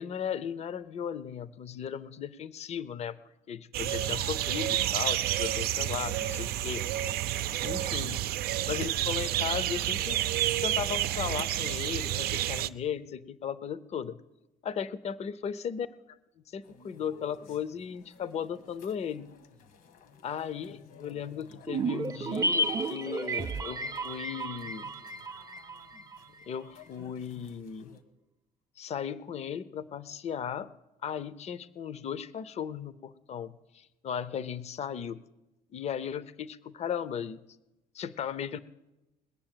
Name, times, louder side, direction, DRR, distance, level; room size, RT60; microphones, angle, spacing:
voice 1, 0.0-3.2 3.5-6.9 7.6-8.2 8.7-10.2 10.6-14.2 14.6-15.9 16.5-19.3 20.2-24.9 26.5-27.9 28.8-30.7 31.0-35.2 35.7-37.4 37.9-38.6, left 8 dB, 45° left, 16 dB, 0.6 m, -36 dB
sound 1, 3.7-12.7, right 13 dB, 85° right, 0.5 m, -30 dB
sound 2, 16.6-28.0, left 5 dB, 75° left, 1.5 m, -55 dB
sound 3, 21.7-26.2 26.4-26.5, right 2 dB, 25° right, 0.6 m, -32 dB
20.5 x 7.1 x 9.0 m, 1.0 s
cardioid pair, 140°, 15 cm